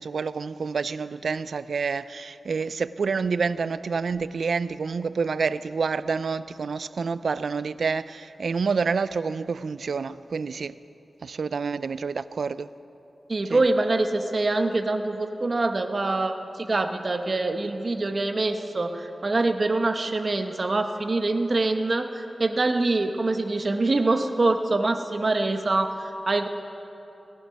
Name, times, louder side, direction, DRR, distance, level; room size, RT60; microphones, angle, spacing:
voice 1, 0.0-10.7 11.2-12.7 13.5-13.6, right 5 dB, 80° right, 0.3 m, -28 dB
voice 2, 13.3-26.5, right 2 dB, 50° right, 0.9 m, -25 dB
18.0 x 11.5 x 5.2 m
wide cardioid pair, 70°, 0 cm